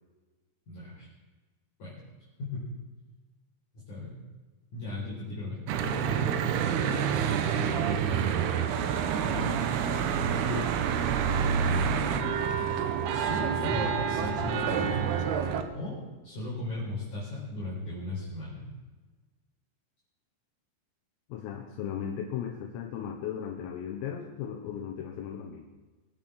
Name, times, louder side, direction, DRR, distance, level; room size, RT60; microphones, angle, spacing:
voice 1, 0.7-1.1 1.8-2.0 2.4-2.6 3.7-4.2 4.7-6.4 9.2-9.5 11.9-12.7 13.1-15.1 15.7-18.6, left 2 dB, 40° left, -8 dB, 5.6 m, -37 dB
Church bell / Traffic noise roadway noise, 5.7-15.6, right 7 dB, 75° right, 2.5 m, -28 dB
voice 2, 21.3-25.7, left 8 dB, 85° left, 1 dB, 4.0 m, -36 dB
23.0 x 9.1 x 6.3 m, 1.3 s
omnidirectional pair, 5.9 m